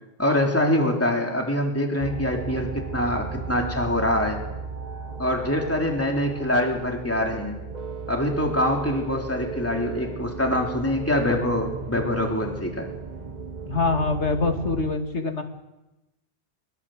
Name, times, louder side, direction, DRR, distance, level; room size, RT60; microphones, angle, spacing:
voice 1, 0.2-4.4 5.2-7.6 8.1-12.9, left 1 dB, 10° left, 1 dB, 3.4 m, -24 dB
sound 1, 2.0-14.9, right 5 dB, 40° right, 1.6 m, -35 dB
voice 2, 13.6-15.4, left 3 dB, 80° left, 5 dB, 2.7 m, -24 dB
23.0 x 23.0 x 7.9 m, 0.98 s
omnidirectional pair, 1.2 m